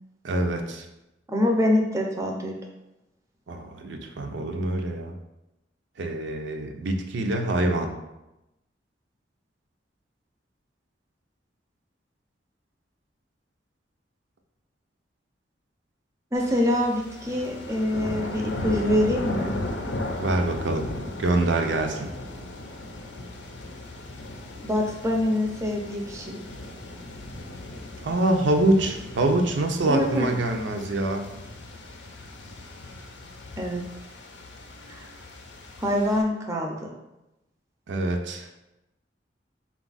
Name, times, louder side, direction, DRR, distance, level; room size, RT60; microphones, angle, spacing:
voice 1, 0.2-0.9 3.5-5.1 6.0-7.9 20.2-20.8 21.2-22.1 28.0-31.3 37.9-38.5, right 2 dB, 80° right, 4 dB, 0.5 m, -25 dB
voice 2, 1.3-2.5 16.3-19.5 24.6-26.4 29.9-30.3 33.6-33.8 34.9-35.1 35.8-36.9, left 1 dB, 15° right, 1 dB, 0.5 m, -25 dB
sound 1, 16.3-36.2, left 2 dB, 75° left, 0.5 m, -37 dB
4.0 x 2.4 x 3.9 m, 0.93 s
head